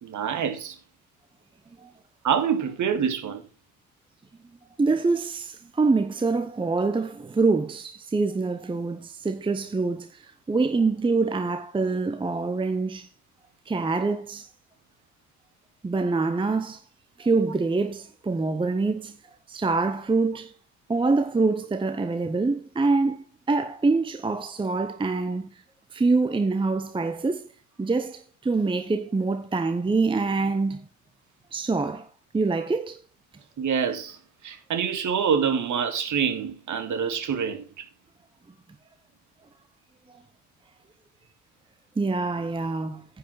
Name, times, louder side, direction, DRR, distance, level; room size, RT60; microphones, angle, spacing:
voice 1, 0.0-0.8 2.2-3.4 33.6-37.9, right 7 dB, 45° right, 2.0 m, -26 dB
voice 2, 4.8-13.1 13.7-14.5 15.8-16.8 17.2-19.2 19.5-20.5 20.9-25.5 25.9-27.4 27.8-30.9 31.5-32.1 32.3-33.0 42.0-43.1, right 3 dB, 10° right, 0.8 m, -25 dB
9.7 x 5.3 x 5.8 m
figure-of-eight pair, 50°, 43 cm